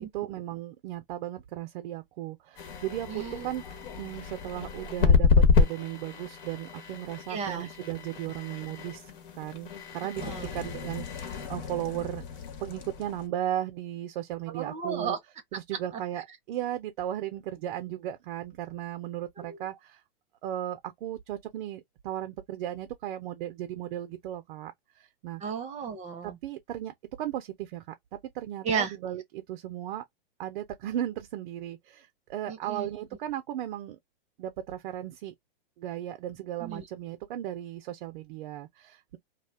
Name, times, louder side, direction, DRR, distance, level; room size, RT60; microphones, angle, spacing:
voice 1, 0.0-5.3 5.5-9.0 9.4-12.2 12.6-15.2 15.5-20.0 20.4-24.7 25.2-25.4 26.2-27.9 28.3-30.0 30.4-34.0 34.4-35.3 35.8-39.2, right 12 dB, 60° right, 0.5 m, -36 dB
sound 1, 2.6-13.3, left 5 dB, 65° left, 1.1 m, -29 dB
voice 2, 3.1-3.5 7.3-7.7 10.2-10.5 14.5-15.2 19.4-19.6 25.4-26.4 28.6-28.9 32.5-32.9 36.6-36.8, right 6 dB, 25° right, 0.7 m, -33 dB
2.3 x 2.1 x 3.3 m
hypercardioid pair, 125°, 29 cm